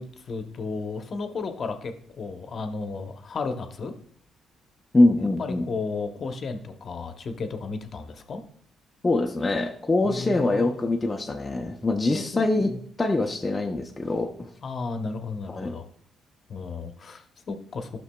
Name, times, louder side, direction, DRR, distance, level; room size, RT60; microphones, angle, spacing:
voice 1, 0.0-3.9 5.2-8.4 10.0-10.7 12.1-12.8 14.6-15.8 16.5-17.9, left 4 dB, 50° left, 7 dB, 0.9 m, -34 dB
voice 2, 4.9-5.7 9.0-14.5 15.5-15.8, left 2 dB, 20° left, 2 dB, 0.6 m, -24 dB
13.0 x 6.0 x 2.3 m, 0.62 s
cardioid pair, 90°, 0 cm